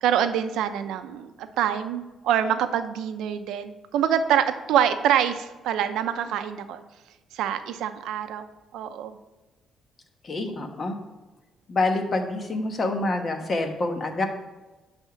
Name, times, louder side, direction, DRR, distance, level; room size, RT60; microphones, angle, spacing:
voice 1, 0.0-6.8 7.3-9.2, right 9 dB, 85° right, 10 dB, 0.6 m, -25 dB
voice 2, 10.2-11.0 11.7-14.2, left 2 dB, 40° left, 5 dB, 1.2 m, -26 dB
9.9 x 3.6 x 5.9 m, 1.1 s
cardioid pair, 90°, 0 cm